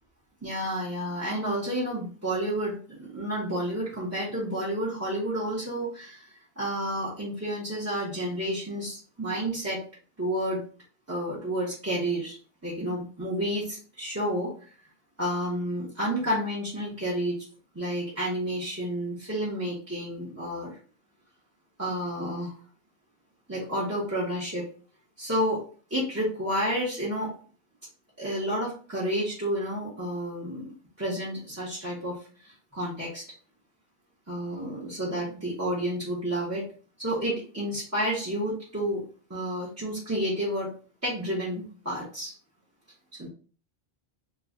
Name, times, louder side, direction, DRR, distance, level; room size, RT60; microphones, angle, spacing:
voice 1, 0.4-9.8 10.2-10.6 11.1-12.4 12.6-14.7 15.2-17.4 17.7-20.8 21.8-22.5 23.5-24.6 25.2-25.6 25.9-27.3 28.2-30.7 31.0-33.2 34.3-36.6 37.0-39.0 39.3-40.7 41.0-42.3 43.2-43.3, equal, 15° right, -8 dB, 0.9 m, -30 dB
3.1 x 2.4 x 3.7 m, 0.42 s
omnidirectional pair, 1.0 m